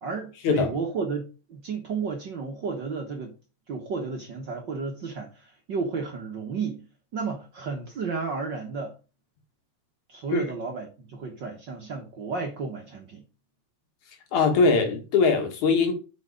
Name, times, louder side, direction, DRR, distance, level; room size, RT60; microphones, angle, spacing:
voice 1, 0.0-3.3 3.7-6.9 7.1-8.9 10.1-13.2, right 4 dB, 50° right, 1.5 m, -32 dB
voice 2, 14.3-15.9, left 4 dB, 75° left, 3.1 m, -21 dB
9.2 x 5.4 x 5.0 m
omnidirectional pair, 3.4 m